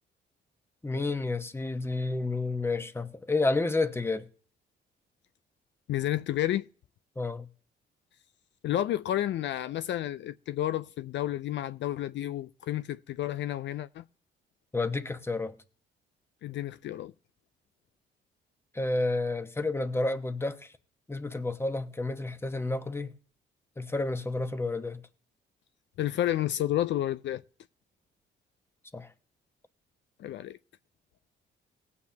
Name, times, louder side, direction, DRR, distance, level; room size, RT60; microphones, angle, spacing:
voice 1, 0.8-4.3 7.2-7.5 14.7-15.5 18.7-20.7 21.1-23.1 23.8-25.0 28.9-29.1, left 2 dB, 10° left, 1.0 m, -30 dB
voice 2, 5.9-6.7 8.6-14.0 16.4-17.1 26.0-27.4 30.2-30.6, left 13 dB, 65° left, 0.5 m, -31 dB
18.5 x 8.4 x 2.8 m
cardioid pair, 90°, 20 cm